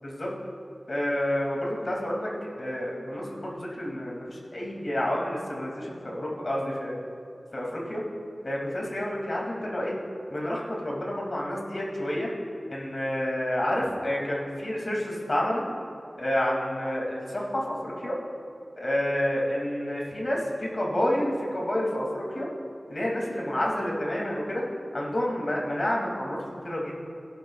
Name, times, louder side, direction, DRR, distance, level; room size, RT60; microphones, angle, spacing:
voice 1, 0.0-0.3 0.9-2.3 2.6-7.0 7.5-8.0 8.4-9.9 10.3-12.3 12.7-15.6 16.2-18.2 18.8-22.5 22.9-24.6 24.9-27.1, left 1 dB, 50° left, -3 dB, 2.6 m, -29 dB
16.5 x 11.5 x 2.4 m, 2.6 s
wide cardioid pair, 75°, 0 cm